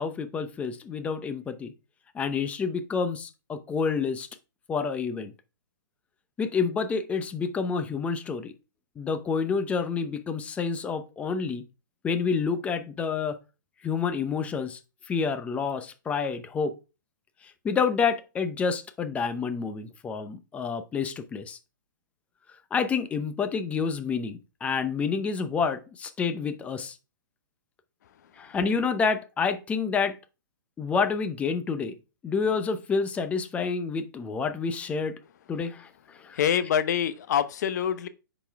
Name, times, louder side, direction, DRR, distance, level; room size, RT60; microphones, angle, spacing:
voice 1, 0.0-1.7 2.1-4.3 4.7-5.3 6.4-8.5 9.0-11.7 12.0-13.4 13.8-14.8 15.1-16.7 17.4-21.6 22.7-27.0 28.4-30.2 30.8-32.0 32.2-35.2 35.5-36.4, left 5 dB, 10° left, 0.7 m, -28 dB
voice 2, 36.3-38.1, left 9 dB, 55° left, 0.9 m, -25 dB
10.5 x 4.2 x 3.5 m
hypercardioid pair, 145°, 11 cm